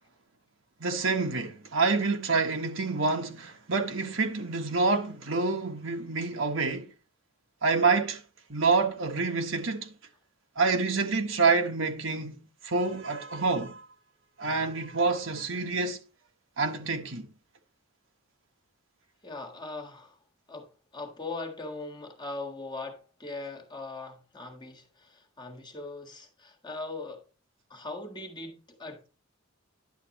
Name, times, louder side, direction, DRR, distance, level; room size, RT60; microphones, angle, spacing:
voice 1, 0.8-6.9 7.6-8.2 8.5-9.9 10.6-13.8 14.4-16.0 16.6-17.3, right 4 dB, 65° right, 1.4 m, -27 dB
voice 2, 19.2-20.2 20.5-27.2 27.7-29.1, left 3 dB, 20° left, 1.6 m, -40 dB
11.0 x 7.6 x 3.0 m
head